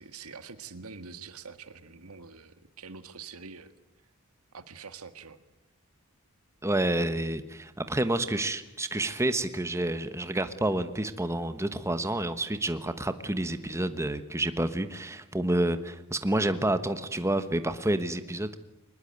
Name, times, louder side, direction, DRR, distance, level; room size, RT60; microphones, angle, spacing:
voice 1, 0.0-3.7 4.5-5.4, right 5 dB, 75° right, 11 dB, 1.7 m, -45 dB
voice 2, 6.6-18.6, right 1 dB, 15° right, 10 dB, 1.2 m, -29 dB
23.0 x 20.5 x 9.5 m, 0.87 s
head